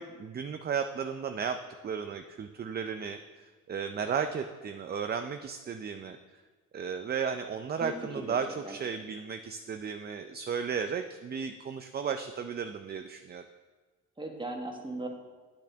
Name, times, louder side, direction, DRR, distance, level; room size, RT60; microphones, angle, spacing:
voice 1, 0.0-1.6 1.8-6.4 6.7-13.4, right 6 dB, 35° right, 7 dB, 0.5 m, -34 dB
voice 2, 7.8-8.4 8.6-8.8 14.2-15.1, right 2 dB, 15° right, 2 dB, 1.4 m, -38 dB
8.5 x 8.3 x 3.4 m, 1.3 s
cardioid pair, 90°, 30 cm